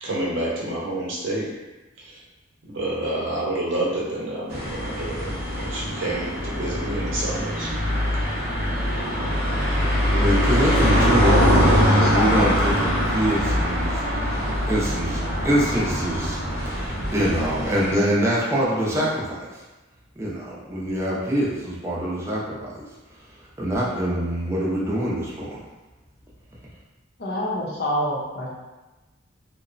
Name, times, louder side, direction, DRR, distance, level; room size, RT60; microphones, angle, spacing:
voice 1, 0.0-1.5 2.0-2.2 2.6-7.7, right 1 dB, 75° right, -6 dB, 0.8 m, -28 dB
sound 1, 4.5-17.9, equal, 50° right, 0.7 m, -23 dB
voice 2, 9.5-11.8 12.1-19.5 20.2-22.8 23.6-25.6, equal, 15° right, -6 dB, 0.5 m, -25 dB
voice 3, 11.8-12.8 27.2-28.5, left 1 dB, 55° left, -4 dB, 0.6 m, -27 dB
2.9 x 2.0 x 2.5 m, 1.1 s
head